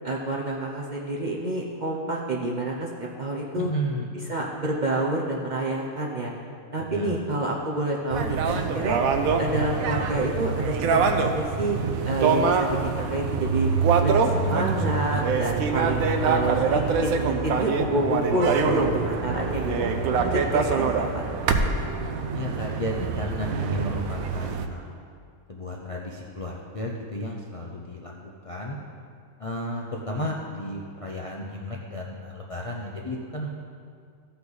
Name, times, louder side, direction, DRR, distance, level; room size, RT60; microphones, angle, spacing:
voice 1, 0.0-3.7 4.1-6.3 6.7-9.0 9.4-11.8 12.0-13.7 14.0-19.9 20.3-21.4, right 1 dB, 45° right, -2 dB, 0.7 m, -28 dB
voice 2, 3.5-4.1 6.9-7.2 22.3-25.0 25.5-28.1 28.4-28.8 29.4-33.5, equal, 40° left, -2 dB, 0.5 m, -33 dB
sound 1, 8.1-24.7, right 5 dB, 75° right, 1.1 m, -25 dB
14.5 x 5.7 x 4.0 m, 2.3 s
omnidirectional pair, 1.5 m